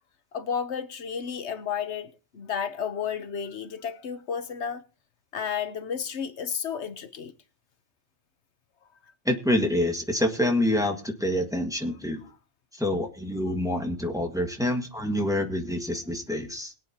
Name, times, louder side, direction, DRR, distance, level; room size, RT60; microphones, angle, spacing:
voice 1, 0.3-4.8 5.3-7.3, left 7 dB, 80° left, 1.2 m, -32 dB
voice 2, 9.2-12.2 12.8-16.7, left 1 dB, 5° right, 1.7 m, -27 dB
21.5 x 8.9 x 2.9 m
omnidirectional pair, 1.1 m